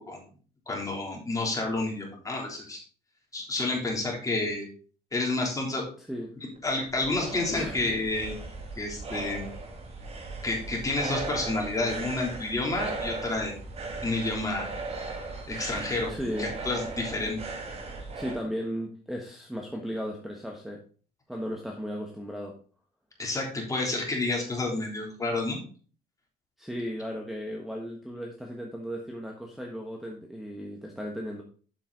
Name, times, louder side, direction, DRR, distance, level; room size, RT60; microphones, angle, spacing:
voice 1, 0.7-2.8 3.3-4.7 5.1-5.9 6.6-8.4 8.7-9.5 10.4-13.6 14.0-14.7 15.5-17.4 23.2-25.6, left 2 dB, 20° left, -1 dB, 3.4 m, -30 dB
voice 2, 6.0-6.3 7.5-7.8 16.1-16.6 18.1-20.8 21.3-22.5 26.6-31.4, equal, ahead, 1 dB, 1.3 m, -35 dB
sound 1, 6.6-18.4, right 3 dB, 35° right, 2.2 m, -37 dB
7.7 x 6.8 x 4.0 m, 0.40 s
cardioid pair, 110°, 17 cm